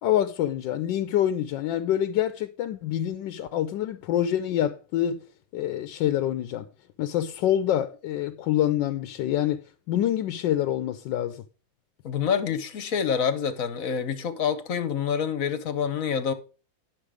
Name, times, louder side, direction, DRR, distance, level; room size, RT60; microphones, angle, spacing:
voice 1, 0.0-5.2 5.5-6.6 7.0-9.6 9.9-11.4, left 11 dB, 85° left, 1.3 m, -26 dB
voice 2, 12.0-16.3, left 7 dB, 55° left, 1.2 m, -27 dB
10.0 x 6.3 x 4.8 m
omnidirectional pair, 1.9 m